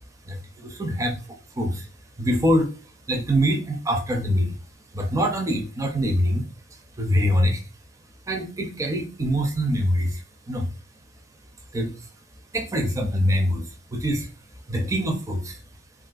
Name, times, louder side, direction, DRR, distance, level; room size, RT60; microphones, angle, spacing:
voice 1, 0.3-1.9 2.2-2.7 3.1-4.5 4.9-6.5 7.0-7.6 8.3-10.7 11.7-12.1 12.5-14.3 14.7-15.6, equal, 15° right, 3 dB, 0.4 m, -24 dB
3.4 x 2.5 x 2.3 m, 0.33 s
head